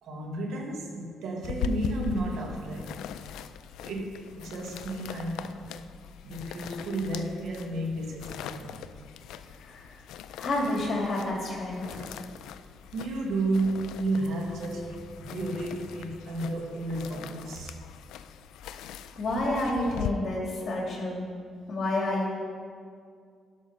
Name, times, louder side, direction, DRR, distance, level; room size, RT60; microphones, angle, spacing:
voice 1, 0.0-3.0 3.8-5.6 6.2-8.8 12.9-17.7, right 2 dB, 75° right, 1 dB, 1.5 m, -32 dB
sound 1, 1.4-20.1, left 9 dB, 85° left, 0.3 m, -41 dB
voice 2, 9.6-10.0 10.3-12.0 18.8-21.2 21.7-22.3, left 1 dB, 45° left, -2 dB, 2.7 m, -30 dB
11.0 x 6.2 x 5.4 m, 2.2 s
cardioid pair, 90°, 0 cm